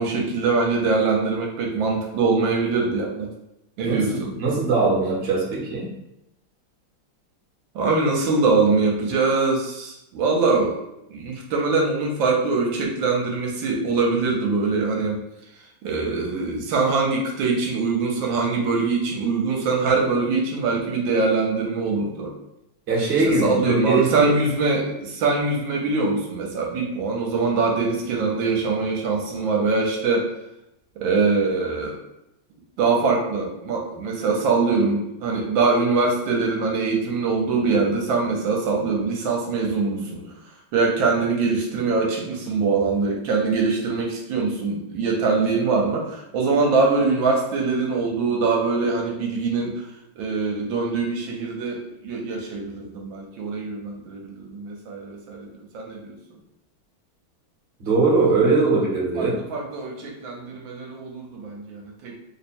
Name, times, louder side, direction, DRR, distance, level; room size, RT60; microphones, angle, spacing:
voice 1, 0.0-3.3 3.8-4.3 7.7-10.8 11.1-15.2 15.8-22.3 23.2-30.3 31.0-32.0 32.8-40.2 40.7-49.7 50.2-55.5 55.7-56.2 58.5-58.6 59.2-62.1, right 4 dB, 75° right, 0 dB, 1.4 m, -23 dB
voice 2, 3.8-5.9 22.9-24.3 57.8-59.4, right 3 dB, 45° right, -4 dB, 0.9 m, -21 dB
3.3 x 2.1 x 4.2 m, 0.85 s
omnidirectional pair, 2.3 m